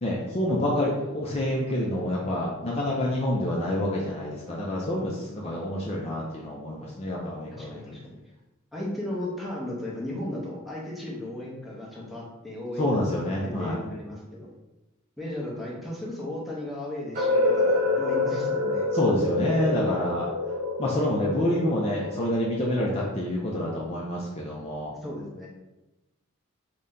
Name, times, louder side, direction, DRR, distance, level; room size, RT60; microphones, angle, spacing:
voice 1, 0.0-7.8 12.8-13.8 18.9-20.3 20.8-24.9, left 1 dB, 30° left, -4 dB, 0.4 m, -27 dB
voice 2, 7.5-8.2 8.7-13.2 13.4-14.5 15.2-18.9 25.0-25.5, left 1 dB, ahead, -5 dB, 0.7 m, -35 dB
sound 1, 17.1-23.0, left 2 dB, 40° right, 0.9 m, -27 dB
3.9 x 2.2 x 3.7 m, 1.0 s
head